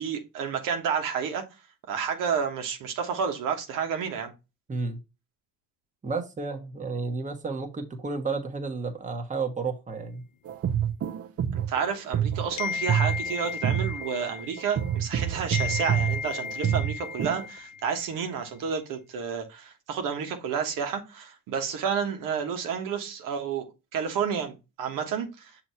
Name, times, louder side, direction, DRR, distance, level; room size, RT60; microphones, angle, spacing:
voice 1, 0.0-1.4 1.9-4.3 11.5-23.6 23.9-25.5, right 7 dB, 85° right, 1.3 m, -30 dB
voice 2, 6.0-10.2, right 4 dB, 25° right, 1.2 m, -32 dB
sound 1, 10.5-17.5, right 9 dB, 50° right, 0.7 m, -28 dB
sound 2, 12.6-15.2 15.5-18.1, left 7 dB, 85° left, 0.7 m, -35 dB
6.4 x 3.0 x 5.5 m
cardioid pair, 110°, 32 cm